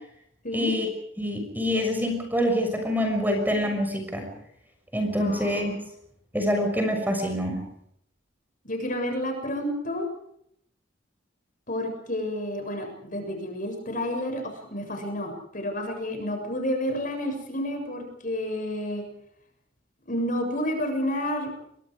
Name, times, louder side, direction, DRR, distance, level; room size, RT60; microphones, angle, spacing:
voice 1, 0.5-0.9 1.2-4.3 4.9-5.7 6.3-7.6, equal, 10° right, 4 dB, 6.3 m, -26 dB
voice 2, 5.2-5.6 8.6-10.1 11.7-19.0 20.1-21.5, left 1 dB, 45° left, 4 dB, 7.3 m, -30 dB
29.5 x 23.5 x 5.1 m, 0.71 s
head